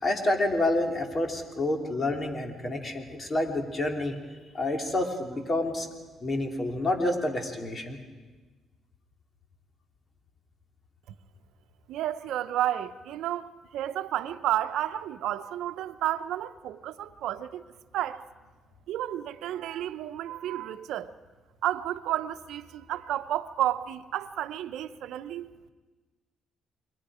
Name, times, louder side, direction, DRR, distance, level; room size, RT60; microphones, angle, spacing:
voice 1, 0.0-4.2 4.5-5.9 6.2-8.0, left 1 dB, 35° left, 3.1 m, -28 dB
voice 2, 11.9-17.6 17.9-18.2 18.9-21.1 21.6-25.5, right 12 dB, 85° right, 0.8 m, -31 dB
29.0 x 22.5 x 5.0 m
cardioid pair, 90°, 0 cm